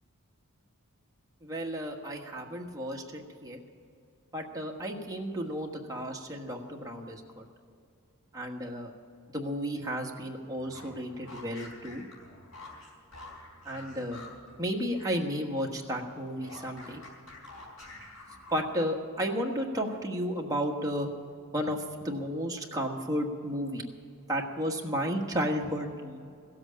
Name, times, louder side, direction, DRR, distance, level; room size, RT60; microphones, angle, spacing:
voice 1, 1.4-3.6 4.3-7.4 8.3-8.9 9.3-12.0 13.6-14.2 14.6-17.0 18.5-21.1 21.5-23.8 24.3-26.2, equal, 15° right, 0 dB, 1.4 m, -33 dB
sound 1, 10.6-15.3 15.6-18.8, left 2 dB, 65° left, 4.4 m, -49 dB
16.0 x 8.0 x 8.6 m, 2.4 s
head